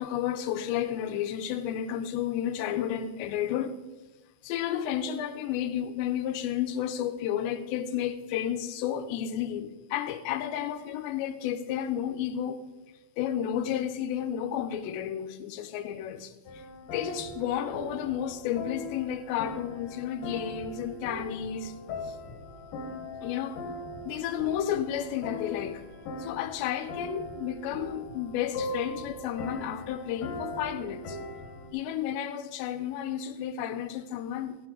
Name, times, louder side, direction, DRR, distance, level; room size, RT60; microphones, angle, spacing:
voice 1, 0.0-3.8 4.4-12.6 13.2-16.7 16.9-21.8 22.0-22.2 23.2-23.6 24.1-25.8 26.2-31.2 31.7-34.6, left 10 dB, 85° left, 2.9 m, -32 dB
sound 1, 16.5-31.7, left 2 dB, 65° left, 2.7 m, -40 dB
14.5 x 11.0 x 3.8 m
omnidirectional pair, 5.1 m